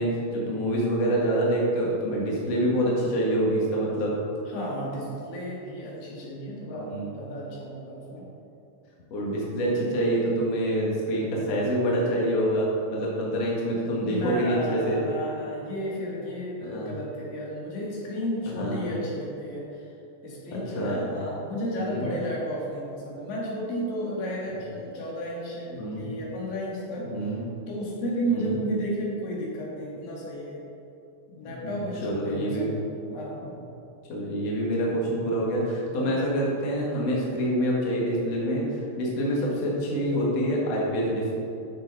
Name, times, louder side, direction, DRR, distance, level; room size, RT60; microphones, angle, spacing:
voice 1, 0.0-4.2 6.8-7.1 9.1-15.0 16.6-16.9 18.5-18.8 20.7-21.1 21.8-22.1 25.7-26.0 27.0-27.4 28.3-28.5 31.4-31.7 32.0-32.7 34.1-41.4, right 1 dB, 85° left, -4 dB, 1.4 m, -26 dB
voice 2, 4.5-8.2 14.0-19.9 20.2-27.1 27.7-30.6 31.3-32.8 33.1-33.4 35.9-36.1, equal, 55° left, -5 dB, 3.0 m, -33 dB
13.5 x 6.7 x 4.0 m, 2.8 s
omnidirectional pair, 5.9 m